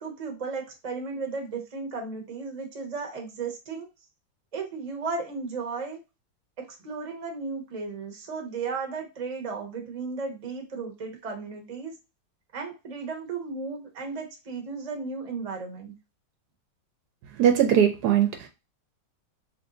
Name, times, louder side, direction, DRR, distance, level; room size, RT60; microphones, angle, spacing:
voice 1, 0.0-3.9 4.5-6.0 6.6-11.9 12.5-15.9, right 4 dB, 30° right, 2 dB, 0.7 m, -35 dB
voice 2, 17.4-18.5, right 9 dB, 70° right, 5 dB, 1.0 m, -20 dB
3.0 x 2.7 x 3.6 m, 0.27 s
omnidirectional pair, 1.9 m